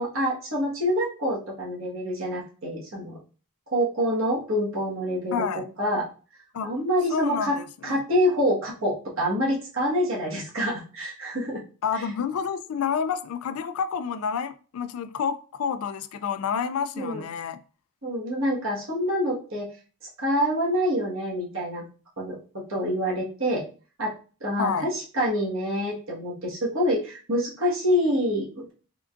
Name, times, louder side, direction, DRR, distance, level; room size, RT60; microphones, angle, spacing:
voice 1, 0.0-3.2 3.7-6.0 6.6-7.6 7.8-11.6 11.9-12.0 16.9-17.2 18.0-19.7 20.2-21.8 22.2-22.4 22.7-23.6 24.0-24.1 24.4-28.7, equal, 60° right, 1.5 m, -26 dB
voice 2, 5.3-5.6 6.5-6.7 7.1-8.0 11.8-17.6 24.6-24.9, left 6 dB, 70° left, 0.3 m, -29 dB
3.7 x 3.5 x 2.5 m
head